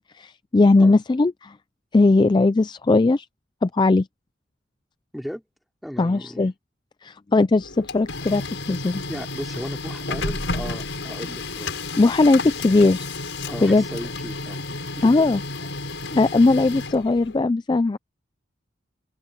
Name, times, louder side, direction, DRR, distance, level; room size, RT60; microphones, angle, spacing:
voice 1, 0.1-1.5 1.9-3.3 3.6-4.1 6.0-6.5 7.0-9.0 12.0-13.1 13.6-13.8 15.0-15.4 16.1-18.0, left 3 dB, 25° left, 0.3 m, -19 dB
voice 2, 5.8-6.5 9.1-11.7 12.1-12.5 13.5-15.3 15.9-16.2, equal, ahead, 4.8 m, -36 dB
Printer, 7.6-17.4, left 3 dB, 75° left, 5.9 m, -32 dB
open air
head